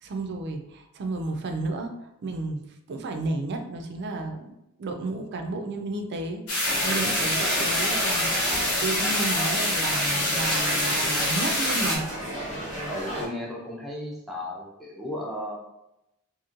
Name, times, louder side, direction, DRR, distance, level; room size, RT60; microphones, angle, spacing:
voice 1, 0.0-1.9 2.2-2.6 2.9-4.5 4.8-6.4 6.8-12.0, right 2 dB, 50° right, 4 dB, 0.4 m, -32 dB
sound 1, 6.5-12.0, left 1 dB, 75° left, 0.9 m, -25 dB
sound 2, 6.6-13.3, equal, 35° left, 0.7 m, -33 dB
voice 2, 12.9-15.6, left 1 dB, ahead, -4 dB, 0.6 m, -35 dB
2.9 x 2.5 x 2.5 m, 0.87 s
head